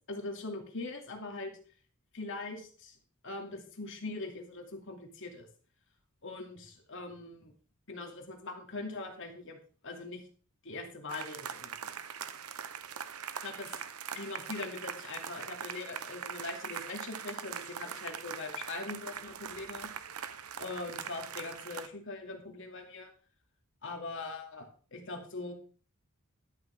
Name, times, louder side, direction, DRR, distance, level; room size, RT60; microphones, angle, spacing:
voice 1, 0.1-1.6 2.1-3.0 3.2-5.5 6.2-7.5 7.9-9.6 9.8-10.2 10.6-11.9 13.4-13.7 14.1-19.9 20.6-23.1 23.8-25.5, left 3 dB, 60° left, 3 dB, 2.5 m, -41 dB
sound 1, 11.1-21.9, right 7 dB, 85° right, 0.9 m, -42 dB
12.5 x 11.5 x 3.6 m, 0.40 s
head